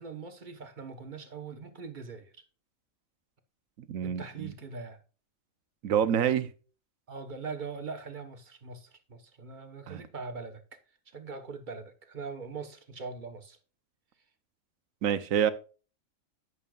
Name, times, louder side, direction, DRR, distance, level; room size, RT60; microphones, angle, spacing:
voice 1, 0.0-2.3 4.0-5.0 7.1-10.6 11.1-13.6, right 4 dB, 40° right, 1.3 m, -41 dB
voice 2, 3.8-4.5 5.8-6.5 9.9-10.0 15.0-15.5, right 9 dB, 85° right, 1.2 m, -27 dB
11.0 x 8.3 x 2.4 m
omnidirectional pair, 1.4 m